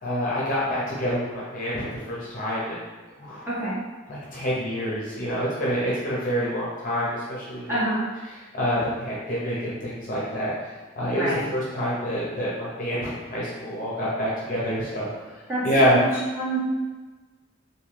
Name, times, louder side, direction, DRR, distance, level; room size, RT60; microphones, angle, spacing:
voice 1, 0.0-2.7 3.2-3.5 4.1-7.7 8.5-10.5 11.0-15.1 15.6-16.0, equal, 40° left, -7 dB, 0.8 m, -27 dB
voice 2, 3.5-3.8 7.7-8.0 11.1-11.5 15.5-16.1 16.3-16.6, right 1 dB, 10° right, -12 dB, 1.5 m, -27 dB
3.4 x 2.6 x 3.0 m, 1.3 s
head